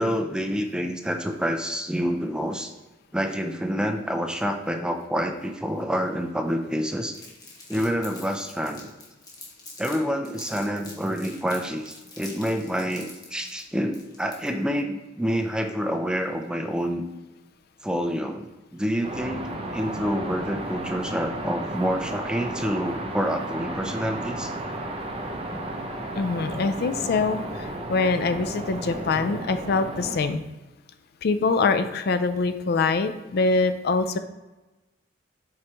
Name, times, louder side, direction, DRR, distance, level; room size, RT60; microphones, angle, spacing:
voice 1, 0.0-2.7 3.1-7.1 7.7-8.9 9.8-17.0 17.8-19.5 19.7-24.5, equal, 5° right, 5 dB, 0.5 m, -27 dB
Crumpling crinkling, 7.1-10.0 10.2-14.7, left 3 dB, 20° left, 1.3 m, -45 dB
sound 1, 19.0-30.2, right 1 dB, 30° right, 0.8 m, -33 dB
voice 2, 26.2-30.4 31.2-34.2, left 4 dB, 55° left, 10 dB, 0.4 m, -24 dB
7.5 x 4.7 x 3.0 m, 1.1 s
head